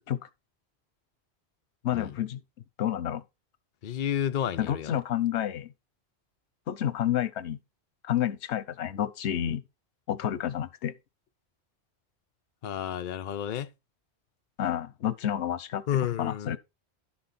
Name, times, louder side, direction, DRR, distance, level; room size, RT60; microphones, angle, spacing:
voice 1, 1.8-2.4 2.8-3.2 4.6-5.7 6.7-7.6 8.0-9.6 10.1-10.9 14.6-15.8 16.2-16.6, left 10 dB, 85° left, 1.0 m, -29 dB
voice 2, 3.8-5.0 12.6-13.7 15.9-16.6, left 9 dB, 55° left, 0.7 m, -31 dB
11.5 x 5.8 x 4.1 m
omnidirectional pair, 1.1 m